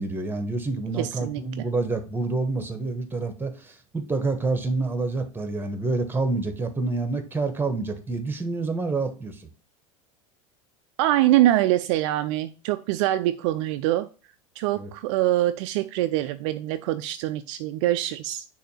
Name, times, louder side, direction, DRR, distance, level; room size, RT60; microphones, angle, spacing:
voice 1, 0.0-9.4 14.8-14.9, right 3 dB, 10° right, 8 dB, 1.3 m, -28 dB
voice 2, 1.0-1.7 11.0-14.1 14.6-18.4, right 14 dB, 60° right, 10 dB, 0.4 m, -24 dB
6.6 x 2.8 x 5.5 m, 0.35 s
hypercardioid pair, 80°, 17 cm